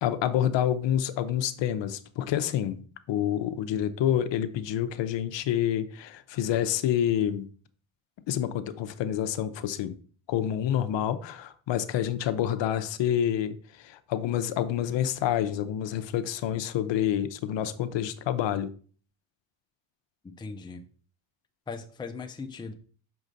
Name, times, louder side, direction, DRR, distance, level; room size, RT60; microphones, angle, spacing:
voice 1, 0.0-7.5 8.3-9.9 10.3-18.7, left 10 dB, 65° left, 0.7 m, -28 dB
voice 2, 20.2-20.8 21.7-22.7, left 4 dB, 10° left, 0.5 m, -39 dB
6.4 x 4.8 x 3.9 m
cardioid pair, 125°, 48 cm